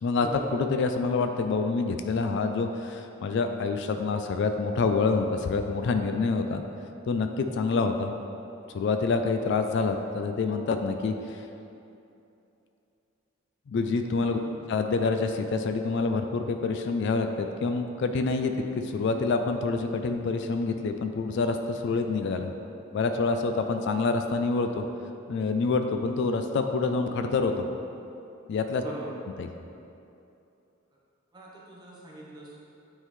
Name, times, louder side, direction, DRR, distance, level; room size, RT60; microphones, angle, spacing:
voice 1, 0.5-6.6 7.1-8.1 8.7-11.4 13.7-14.4 14.7-22.5 22.9-24.8 25.3-27.7 28.5-28.8 29.4-29.5, left 4 dB, 60° left, 6 dB, 0.3 m, -27 dB
voice 2, 28.8-29.1 31.3-32.6, right 1 dB, 20° right, -5 dB, 0.9 m, -41 dB
9.0 x 3.7 x 3.2 m, 2.8 s
head